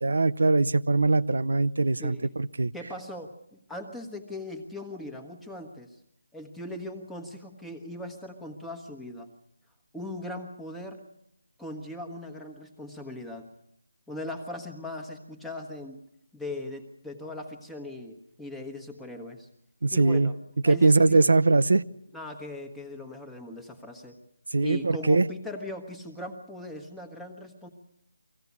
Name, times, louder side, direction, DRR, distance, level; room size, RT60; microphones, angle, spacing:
voice 1, 0.0-2.7 19.8-20.3 20.6-21.8 24.5-25.3, right 3 dB, 75° right, 0.7 m, -22 dB
voice 2, 2.0-2.3 2.7-6.0 6.3-9.3 9.9-11.0 11.6-13.5 14.1-16.0 16.3-19.5 19.9-20.4 20.6-21.3 22.1-24.2 24.6-27.7, left 1 dB, ahead, 1.3 m, -39 dB
24.5 x 16.0 x 8.4 m
hypercardioid pair, 170°, 0 cm